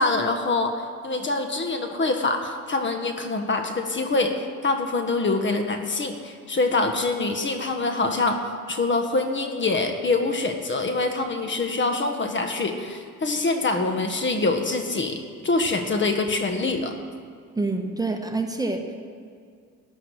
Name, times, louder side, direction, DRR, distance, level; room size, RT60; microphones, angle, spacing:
voice 1, 0.0-8.4 8.7-17.0, left 3 dB, 40° left, 5 dB, 1.5 m, -25 dB
voice 2, 17.6-19.0, right 3 dB, 10° right, 4 dB, 1.2 m, -27 dB
12.0 x 10.0 x 6.5 m, 2.2 s
cardioid pair, 90°, 30 cm